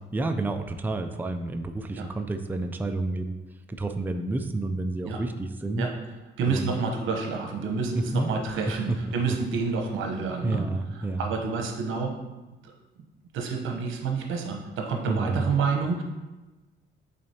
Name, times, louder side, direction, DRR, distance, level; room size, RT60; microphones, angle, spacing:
voice 1, 0.1-3.4 3.7-5.9 6.5-6.7 8.0-9.1 10.4-11.3 15.0-15.5, right 2 dB, 10° right, 6 dB, 0.4 m, -30 dB
voice 2, 6.4-10.6 11.2-12.2 12.6-12.7 13.3-16.0, right 4 dB, 85° right, 2 dB, 1.0 m, -28 dB
8.3 x 3.9 x 2.9 m, 1.1 s
cardioid pair, 90°, 20 cm